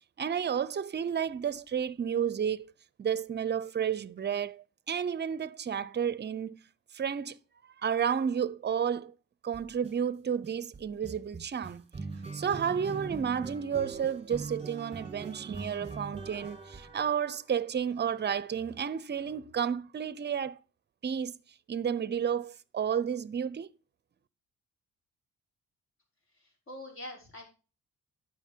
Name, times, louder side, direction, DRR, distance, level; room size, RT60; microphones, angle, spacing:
voice 1, 0.2-2.7 3.0-6.6 6.9-7.4 7.8-9.1 9.4-11.8 12.3-20.6 21.0-21.4 21.7-23.7, right 8 dB, 35° right, 0.7 m, -31 dB
sound 1, 9.5-9.9 10.4-17.6, right 4 dB, 20° right, 1.7 m, -42 dB
voice 2, 26.4-27.4, left 1 dB, 45° left, 5.8 m, -44 dB
10.5 x 6.3 x 4.5 m
cardioid pair, 90°, 30 cm